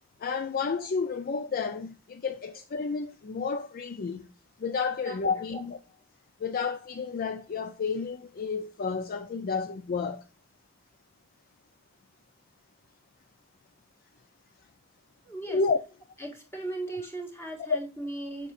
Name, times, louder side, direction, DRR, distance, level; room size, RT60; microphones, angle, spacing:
voice 1, 0.2-4.3 4.6-5.8 6.4-10.2 15.5-15.8, left 5 dB, 45° left, 0.4 m, -31 dB
voice 2, 15.2-15.6 16.2-18.5, right 2 dB, 15° left, 1.7 m, -37 dB
7.0 x 5.9 x 2.4 m
head